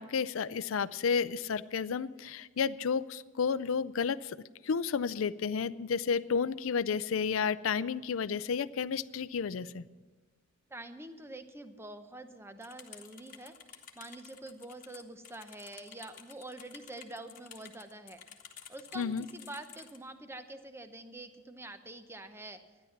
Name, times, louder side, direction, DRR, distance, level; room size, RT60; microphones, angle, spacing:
voice 1, 0.0-4.4 4.6-9.8 19.0-19.3, left 6 dB, 80° left, 17 dB, 0.4 m, -31 dB
voice 2, 10.7-13.6 14.0-18.2 18.7-22.6, right 1 dB, 10° right, 9 dB, 0.8 m, -46 dB
sound 1, 12.6-20.0, left 8 dB, 45° left, 1.3 m, -52 dB
13.0 x 10.5 x 7.3 m, 1.3 s
head